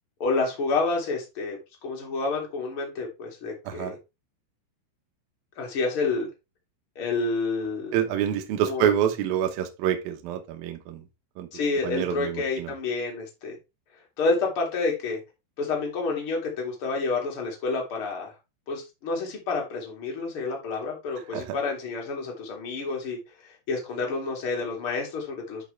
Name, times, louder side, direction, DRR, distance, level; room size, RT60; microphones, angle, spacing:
voice 1, 0.2-4.0 5.6-6.3 7.0-8.0 8.6-8.9 11.5-13.6 14.2-15.2 15.6-18.3 18.7-23.2 23.7-25.7, left 3 dB, 35° left, 2.6 m, -29 dB
voice 2, 7.9-11.0 11.4-11.5 11.8-12.7 21.3-21.6, right 10 dB, 80° right, 2.1 m, -27 dB
9.7 x 5.5 x 3.3 m
omnidirectional pair, 5.8 m